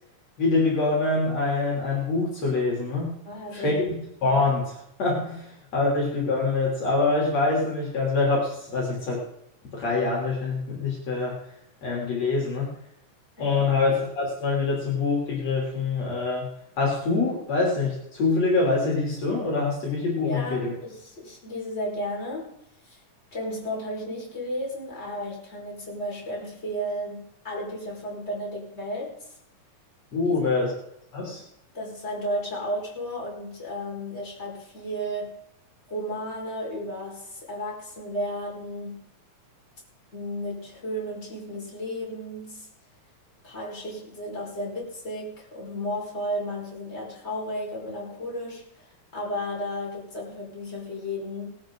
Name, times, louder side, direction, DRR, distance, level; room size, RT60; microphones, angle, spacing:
voice 1, 0.4-3.2 3.5-3.8 4.2-9.2 9.7-11.4 11.8-12.7 13.4-16.5 16.8-20.7 30.1-30.7 31.1-31.4, left 3 dB, 55° left, -3 dB, 4.2 m, -25 dB
voice 2, 3.3-3.9 13.4-13.7 20.2-22.6 22.8-23.0 23.3-29.3 30.3-30.5 31.7-35.4 35.9-39.1 40.1-42.7 43.4-48.9 49.1-51.5, equal, 20° left, -4 dB, 5.1 m, -33 dB
18.5 x 13.0 x 3.9 m, 0.77 s
omnidirectional pair, 3.6 m